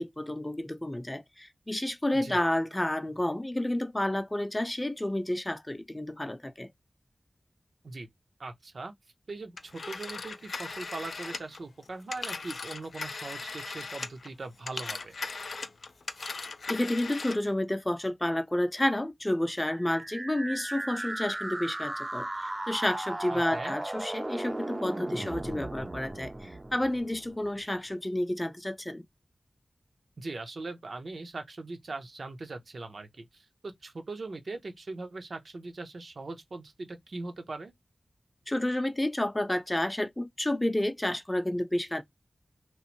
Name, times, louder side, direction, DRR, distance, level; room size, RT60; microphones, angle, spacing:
voice 1, 0.0-6.7 16.7-29.1 38.5-42.0, left 1 dB, 20° left, 0.5 m, -30 dB
voice 2, 2.1-2.5 7.8-8.1 8.4-8.9 9.3-15.1 23.3-23.7 30.2-37.7, right 3 dB, 75° right, 0.6 m, -40 dB
Telephone, 9.6-14.3 14.6-17.5, left 4 dB, 80° left, 0.3 m, -38 dB
sound 1, 19.7-27.6, right 2 dB, 35° right, 0.4 m, -36 dB
3.0 x 2.0 x 2.8 m
cardioid pair, 50°, 0 cm